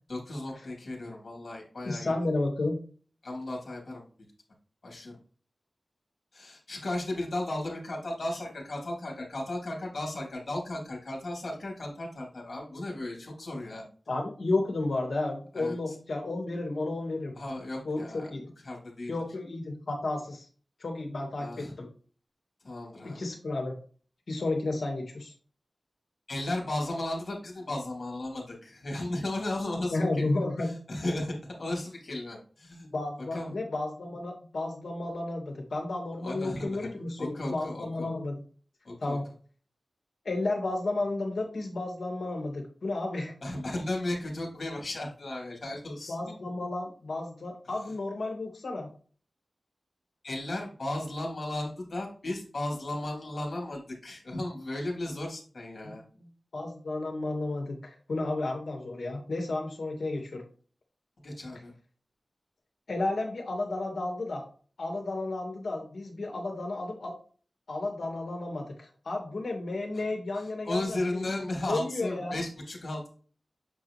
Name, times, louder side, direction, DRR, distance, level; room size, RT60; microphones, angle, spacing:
voice 1, 0.1-2.2 3.2-4.0 4.8-5.1 6.3-13.8 15.5-15.9 17.3-18.3 18.6-19.2 21.4-21.7 22.6-23.2 26.3-32.9 33.3-33.5 36.2-36.9 37.2-38.1 38.8-39.2 43.4-46.4 50.2-56.0 61.2-61.7 70.4-73.1, left 1 dB, 70° left, -1 dB, 3.1 m, -35 dB
voice 2, 1.8-2.8 14.1-17.3 17.8-18.4 19.1-20.5 20.8-21.9 23.0-23.7 24.3-25.3 29.9-30.7 32.9-38.4 39.0-39.2 40.2-43.3 46.1-48.9 56.5-60.4 62.9-64.4 64.8-67.1 67.7-71.4 71.7-72.4, left 2 dB, 85° left, 1 dB, 2.2 m, -32 dB
8.2 x 4.9 x 3.3 m, 0.41 s
wide cardioid pair, 85°, 0 cm